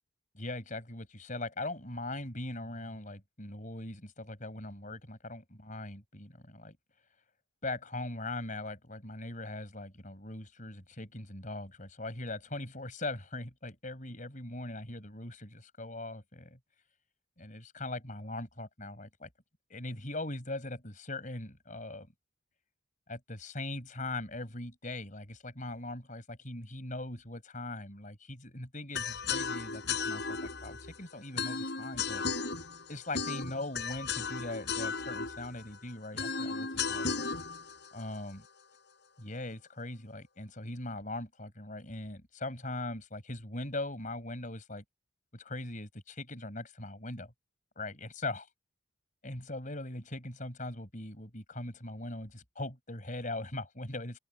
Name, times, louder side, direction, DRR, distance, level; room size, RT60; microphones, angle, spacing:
voice 1, 0.3-6.8 7.6-16.6 17.4-19.3 19.7-22.1 23.1-32.2 32.9-37.3 37.9-38.5 39.2-44.8 45.3-47.3 47.8-48.5 49.2-54.2, left 2 dB, 40° left, 5.4 m, -40 dB
sound 1, 28.9-39.0, left 5 dB, 55° left, 6.0 m, -36 dB
open air
head